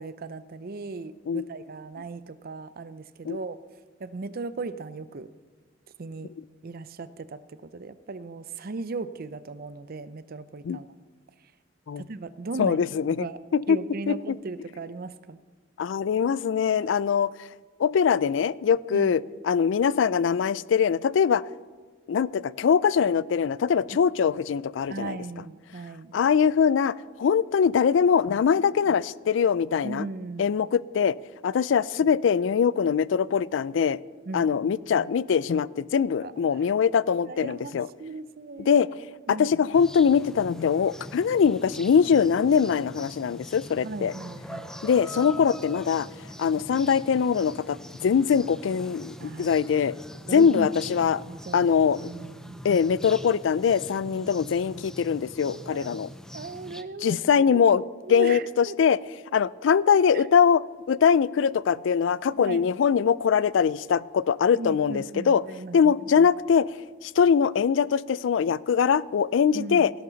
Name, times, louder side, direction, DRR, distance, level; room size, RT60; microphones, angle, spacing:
voice 1, 0.0-3.6 4.0-5.3 6.0-6.3 6.6-10.9 12.0-12.9 13.2-13.4 13.7-15.4 18.9-19.1 24.9-26.1 29.8-30.5 34.3-35.1 36.2-36.3 37.2-38.8 39.3-39.7 43.8-44.8 49.2-49.6 50.3-50.7 51.0-51.6 52.0-52.7 55.5-55.9 56.3-57.5 58.0-58.8 60.1-60.2 62.3-62.7 64.6-66.3 69.5-69.9, right 3 dB, 50° right, 15 dB, 0.5 m, -37 dB
voice 2, 12.6-13.3 13.5-13.8 14.1-14.4 15.8-17.3 17.8-21.4 22.1-25.2 26.1-30.1 30.4-31.2 31.4-34.0 34.3-37.9 38.7-38.9 39.3-44.1 44.8-46.1 46.4-49.9 50.3-51.2 51.5-52.0 52.6-56.1 57.0-57.8 58.1-59.0 59.3-65.4 65.7-66.7 67.0-69.9, left 7 dB, 70° left, 21 dB, 0.3 m, -22 dB
sound 1, 39.7-56.8, equal, 5° left, 0.5 m, -43 dB
17.0 x 11.5 x 4.0 m, 1.4 s
head